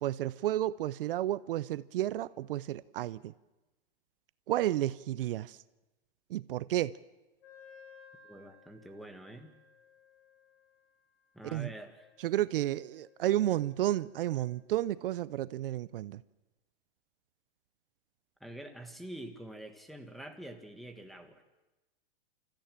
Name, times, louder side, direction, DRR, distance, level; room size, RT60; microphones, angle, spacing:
voice 1, 0.0-3.3 4.5-5.6 6.3-7.0 11.5-11.7 12.2-16.2, right 13 dB, 70° right, 0.6 m, -32 dB
Wind instrument woodwind instrument, 7.4-14.8, left 5 dB, 85° left, 3.8 m, -60 dB
voice 2, 8.2-9.5 11.3-12.1 18.4-21.4, right 1 dB, ahead, 1.5 m, -46 dB
28.0 x 14.5 x 7.4 m
hypercardioid pair, 140°, 29 cm